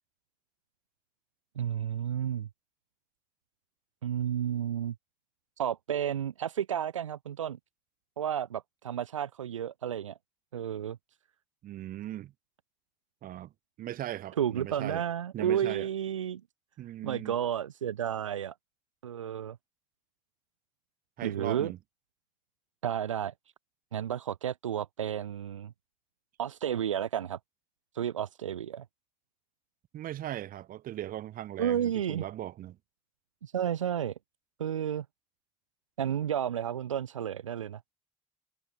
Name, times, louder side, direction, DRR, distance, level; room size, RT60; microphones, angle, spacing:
voice 1, 1.6-2.5 4.0-4.9 5.6-7.6 8.2-10.2 10.5-11.0 14.4-16.4 17.0-18.5 19.0-19.6 21.2-21.7 22.8-23.3 23.9-25.7 26.4-27.4 27.9-28.9 31.6-32.2 33.4-34.1 34.6-35.1 36.0-37.8, right 9 dB, 90° right, 0.6 m, -32 dB
voice 2, 11.6-12.3 13.2-13.5 13.8-15.0 15.3-15.9 16.8-17.3 21.2-21.8 29.9-32.8, right 13 dB, 65° right, 2.9 m, -38 dB
figure-of-eight pair, 40°, 16 cm